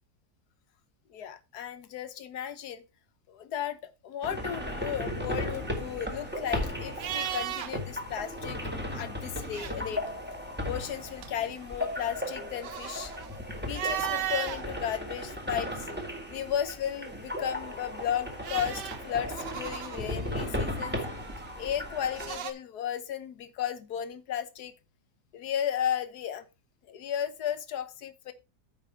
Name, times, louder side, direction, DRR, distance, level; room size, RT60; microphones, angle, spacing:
voice 1, 1.1-2.8 3.3-8.6 8.9-10.0 10.7-13.1 13.6-15.9 16.3-21.0 21.6-24.7 25.3-26.4 26.8-28.3, left 9 dB, 70° left, 1.5 m, -34 dB
sound 1, 4.2-22.4, left 1 dB, 5° right, 1.7 m, -36 dB
sound 2, 5.5-8.0 8.3-8.4 9.2-10.1 10.7-14.6 15.2-16.2 17.7-22.5, right 10 dB, 85° right, 1.5 m, -38 dB
9.2 x 4.8 x 5.5 m
omnidirectional pair, 1.8 m